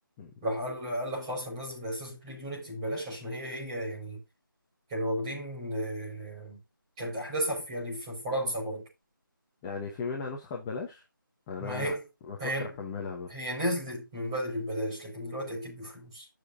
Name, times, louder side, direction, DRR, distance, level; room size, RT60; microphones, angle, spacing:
voice 1, 0.4-4.2 4.9-6.6 7.0-8.8 11.6-12.0 12.4-12.7 13.3-16.3, equal, 15° right, 5.3 m, -34 dB
voice 2, 9.6-11.0 11.5-12.0 12.3-13.3, left 4 dB, 10° left, 0.9 m, -36 dB
14.0 x 6.9 x 2.7 m
figure-of-eight pair, 165°, 11 cm